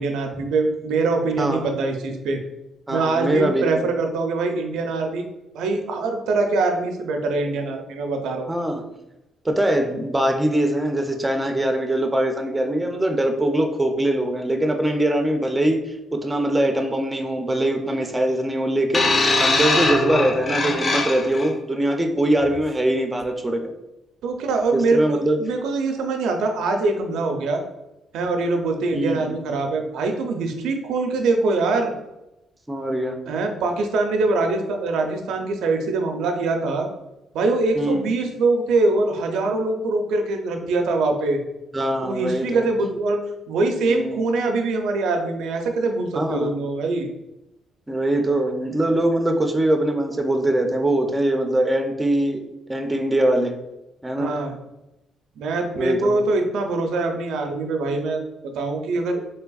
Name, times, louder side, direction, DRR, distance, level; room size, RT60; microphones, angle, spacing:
voice 1, 0.0-2.4 2.9-5.2 5.5-8.5 19.5-19.6 24.2-27.6 28.1-31.9 33.3-36.9 37.3-41.4 42.0-43.2 43.5-47.1 54.2-54.5 55.4-58.2 58.5-59.2, right 3 dB, 85° right, 4 dB, 0.5 m, -23 dB
voice 2, 2.9-3.7 8.5-8.8 9.4-23.7 24.7-25.4 28.9-29.4 32.7-33.2 37.8-38.1 41.7-42.7 43.9-44.3 46.2-46.5 47.9-52.4 52.7-53.6 54.0-54.3 55.8-56.1, right 1 dB, 15° right, 4 dB, 0.5 m, -22 dB
sound 1, 18.9-21.5 22.4-22.6, left 3 dB, 45° left, 0.5 m, -21 dB
3.3 x 3.3 x 2.3 m, 0.93 s
cardioid pair, 90°, 0 cm